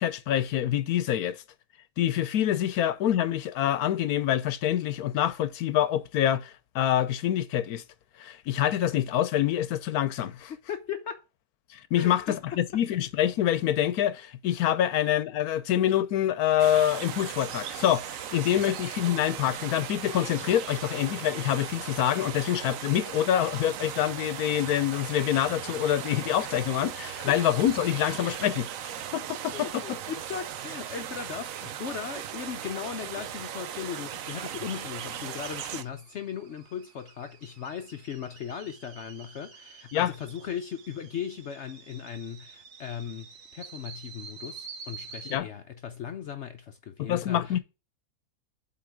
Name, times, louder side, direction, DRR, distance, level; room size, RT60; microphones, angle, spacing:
voice 1, 0.0-1.4 2.0-7.8 8.2-10.5 11.7-30.0 39.9-40.1 45.3-45.5 47.0-47.6, left 11 dB, 75° left, 1.2 m, -26 dB
voice 2, 10.5-11.2 12.0-12.8 18.3-19.0 27.2-27.4 29.5-47.6, left 8 dB, 60° left, 0.8 m, -38 dB
sound 1, 16.6-35.8, right 10 dB, 65° right, 1.0 m, -38 dB
sound 2, 32.8-45.4, right 5 dB, 90° right, 1.6 m, -49 dB
7.9 x 3.7 x 4.6 m
omnidirectional pair, 1.6 m